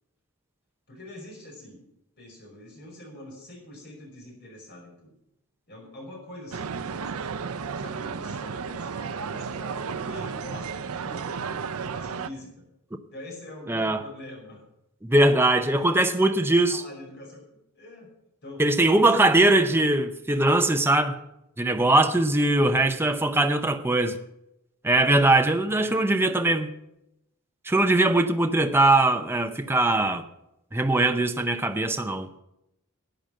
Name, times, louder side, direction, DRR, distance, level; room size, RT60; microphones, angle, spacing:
voice 1, 0.9-1.8 2.2-5.1 5.7-7.3 7.8-12.5 13.1-14.6 15.7-16.3 16.7-17.4 17.7-18.1 18.4-18.6 18.9-19.4 22.5-22.9 25.4-26.5, left 1 dB, 50° left, 5.3 m, -44 dB
sound 1, 6.5-12.3, right 5 dB, 70° right, 0.6 m, -33 dB
voice 2, 13.7-14.0 15.0-16.8 18.6-21.2 21.6-24.2 24.8-26.7 27.6-30.2 30.7-32.3, right 2 dB, 10° right, 0.7 m, -21 dB
11.5 x 9.2 x 7.4 m
head